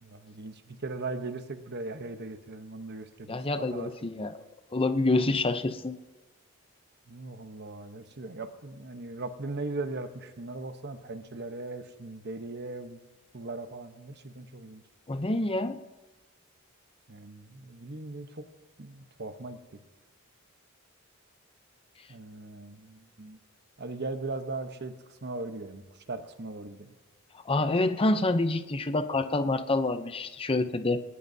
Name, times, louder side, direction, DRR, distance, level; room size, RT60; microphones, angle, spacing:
voice 1, 0.0-4.1 7.1-13.0 13.3-14.8 17.1-18.4 18.8-19.8 22.1-23.4 23.8-26.9, right 3 dB, 50° right, 8 dB, 1.0 m, -39 dB
voice 2, 3.3-4.4 4.7-6.0 15.1-15.8 27.5-31.0, left 2 dB, 25° left, 10 dB, 0.7 m, -27 dB
20.0 x 18.5 x 2.8 m, 1.2 s
head